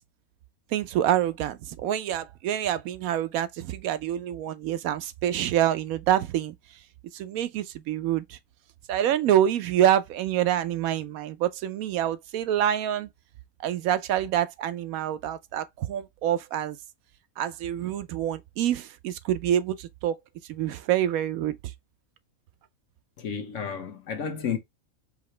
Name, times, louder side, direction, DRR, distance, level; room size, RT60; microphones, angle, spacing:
voice 1, 0.7-6.5 7.1-8.4 8.9-13.1 13.6-16.8 17.4-20.1 20.5-21.5, right 11 dB, 80° right, 1.0 m, -26 dB
voice 2, 23.2-24.6, left 7 dB, 65° left, 1.2 m, -31 dB
4.9 x 2.8 x 3.2 m
omnidirectional pair, 1.5 m